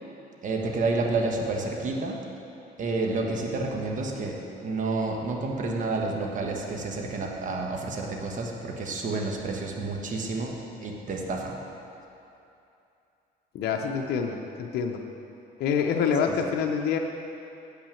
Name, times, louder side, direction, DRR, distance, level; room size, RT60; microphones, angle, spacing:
voice 1, 0.4-2.2 2.8-11.6, right 3 dB, 50° right, 0 dB, 1.3 m, -30 dB
voice 2, 13.5-15.0 15.6-17.0, left 6 dB, 70° left, 2 dB, 0.7 m, -26 dB
8.4 x 6.0 x 7.1 m, 2.7 s
cardioid pair, 110°, 17 cm